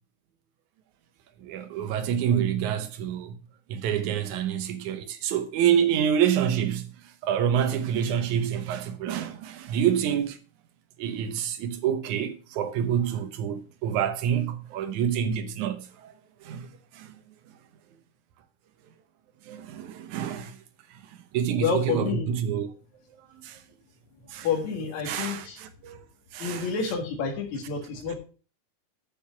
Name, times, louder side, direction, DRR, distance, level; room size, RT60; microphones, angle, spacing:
voice 1, 1.4-3.4 3.7-10.4 11.0-16.1 16.4-17.1 19.4-20.6 20.9-22.7 23.2-23.6 24.3-24.5 25.0-26.0 26.3-26.7 28.1-28.2, right 9 dB, 75° right, 2.3 m, -27 dB
voice 2, 21.6-22.3 24.4-25.6 26.4-28.2, left 5 dB, 65° left, 3.2 m, -29 dB
7.1 x 6.7 x 5.7 m
omnidirectional pair, 3.5 m